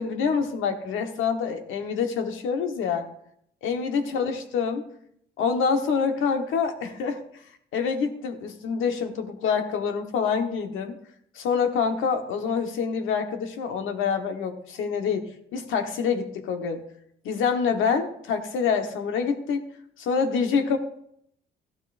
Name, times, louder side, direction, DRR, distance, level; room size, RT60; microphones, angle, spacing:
voice 1, 0.0-3.1 3.6-4.9 5.4-7.2 7.7-11.0 11.3-16.8 17.2-19.6 20.0-20.8, left 6 dB, 85° left, 5 dB, 1.3 m, -26 dB
14.5 x 12.0 x 2.6 m, 0.71 s
cardioid pair, 90°, 20 cm